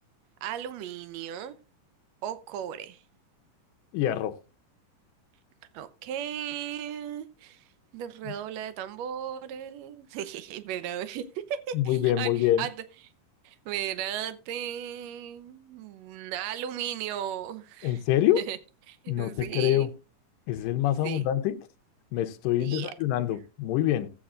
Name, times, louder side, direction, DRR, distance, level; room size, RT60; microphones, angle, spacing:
voice 1, 0.4-1.6 2.2-3.0 5.7-7.6 7.9-12.7 13.4-18.0 18.4-18.6 18.9-19.9 21.0-21.2 22.6-22.9, right 10 dB, 75° right, 1.6 m, -36 dB
voice 2, 3.9-4.4 8.3-8.4 11.7-12.7 17.8-18.4 19.1-19.9 20.5-21.6 22.1-24.1, left 12 dB, 80° left, 2.3 m, -25 dB
15.5 x 8.4 x 2.5 m
omnidirectional pair, 4.0 m